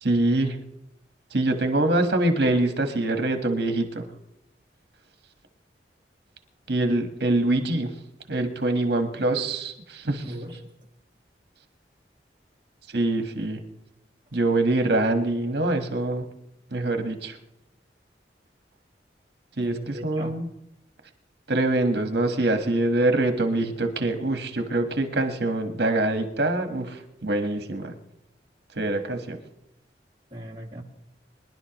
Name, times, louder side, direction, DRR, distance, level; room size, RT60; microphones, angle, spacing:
voice 1, 0.0-0.6 1.3-4.0 6.7-7.9 8.3-10.3 12.9-13.6 14.3-16.3 16.7-17.4 19.6-20.5 21.5-27.9 28.7-29.4, right 2 dB, 65° right, 6 dB, 1.4 m, -24 dB
voice 2, 10.2-10.6 19.6-20.4 30.3-30.8, equal, 25° right, -1 dB, 1.8 m, -37 dB
24.5 x 11.0 x 3.0 m, 0.84 s
head